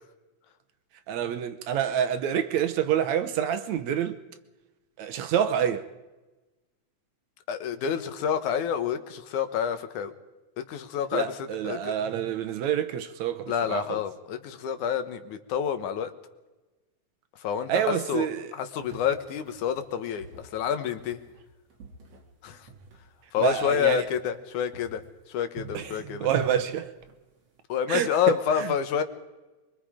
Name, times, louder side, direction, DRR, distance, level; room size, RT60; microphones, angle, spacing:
voice 1, 1.1-4.2 5.0-5.9 11.1-14.0 17.7-18.5 23.4-24.0 25.7-26.9 27.9-28.7, right 9 dB, 70° right, 2.2 m, -27 dB
voice 2, 7.5-10.1 10.6-12.0 13.5-16.1 17.4-18.3 18.5-21.2 22.4-22.7 23.3-25.0 25.3-26.3 27.7-29.0, left 8 dB, 80° left, 2.6 m, -28 dB
sound 1, 18.8-24.5 24.7-27.6, right 3 dB, 55° right, 3.5 m, -49 dB
23.5 x 23.0 x 5.0 m
omnidirectional pair, 3.5 m